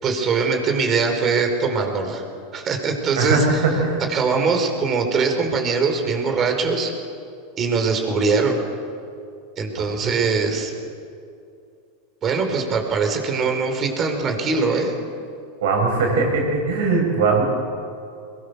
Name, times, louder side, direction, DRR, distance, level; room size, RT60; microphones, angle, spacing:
voice 1, 0.0-2.2 2.5-3.6 4.1-6.9 7.6-8.6 9.6-10.7 12.2-14.9, right 4 dB, 35° right, 4 dB, 4.9 m, -22 dB
voice 2, 3.2-4.0 9.7-9.9 15.6-17.4, right 4 dB, 75° right, 1 dB, 7.6 m, -20 dB
23.0 x 22.0 x 7.0 m, 2.4 s
hypercardioid pair, 105°, 0 cm